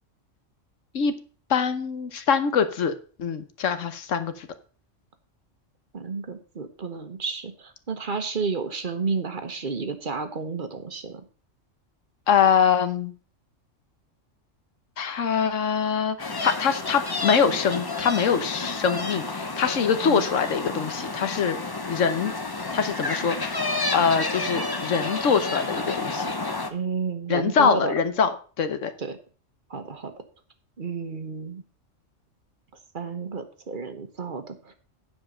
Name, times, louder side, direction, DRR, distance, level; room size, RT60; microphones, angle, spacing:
voice 1, 1.5-2.9 3.2-4.5 12.3-13.1 15.0-21.6 21.9-22.3 22.7-23.6 23.9-26.3 27.3-28.9, left 6 dB, 75° left, 10 dB, 1.3 m, -24 dB
voice 2, 5.9-11.2 20.0-20.2 26.7-27.9 29.0-29.2 29.7-30.1 30.8-31.6 32.9-34.7, right 5 dB, 45° right, 8 dB, 1.2 m, -31 dB
sound 1, 16.2-26.7, left 3 dB, 20° left, 0.7 m, -30 dB
9.5 x 5.1 x 6.2 m, 0.39 s
omnidirectional pair, 1.3 m